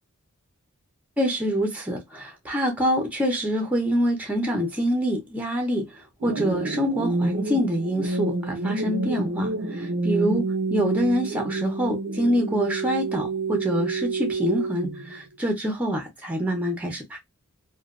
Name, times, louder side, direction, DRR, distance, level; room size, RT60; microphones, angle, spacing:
voice 1, 1.2-10.4 10.7-17.2, equal, 5° right, 0.6 m, -26 dB
sound 1, 6.2-15.2, right 3 dB, 70° right, 0.5 m, -28 dB
3.0 x 2.2 x 2.4 m
head